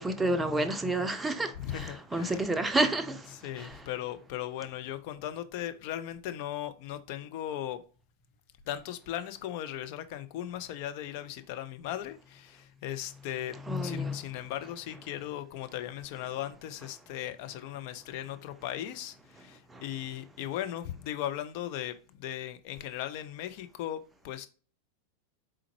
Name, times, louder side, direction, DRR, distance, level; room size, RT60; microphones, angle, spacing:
voice 1, 0.0-3.9 13.5-14.2 19.7-19.8, right 1 dB, 10° right, 0.6 m, -30 dB
voice 2, 1.6-2.5 3.3-7.8 8.7-13.6 13.8-24.5, left 12 dB, 45° left, 0.5 m, -38 dB
4.3 x 3.7 x 2.9 m
figure-of-eight pair, 90°, 0 cm